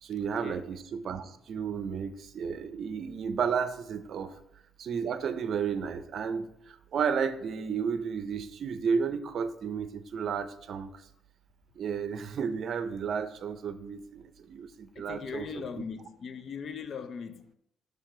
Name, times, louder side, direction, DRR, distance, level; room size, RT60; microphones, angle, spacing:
voice 1, 0.0-4.3 4.8-11.0 11.8-15.8, right 6 dB, 60° right, 0.5 m, -33 dB
voice 2, 15.0-17.5, left 6 dB, 55° left, 0.5 m, -39 dB
6.5 x 3.3 x 4.9 m
cardioid pair, 90°, 0 cm